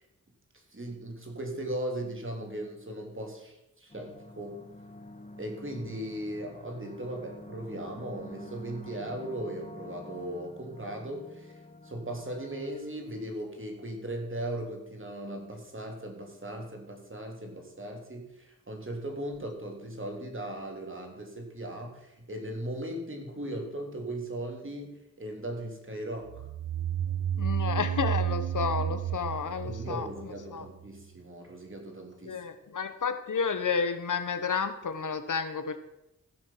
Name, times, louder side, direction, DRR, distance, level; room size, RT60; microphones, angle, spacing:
voice 1, 0.7-4.6 5.4-11.5 11.8-24.9 25.2-26.5 29.6-32.4, right 1 dB, 35° right, 2 dB, 3.2 m, -38 dB
sound 1, 3.9-13.7, left 2 dB, 20° left, 1.6 m, -48 dB
sound 2, 26.3-30.8, right 10 dB, 70° right, 0.6 m, -31 dB
voice 2, 27.4-30.1 30.5-30.7 32.3-35.8, left 6 dB, 60° left, 10 dB, 1.0 m, -31 dB
15.0 x 6.4 x 5.7 m, 0.86 s
cardioid pair, 45°, 35 cm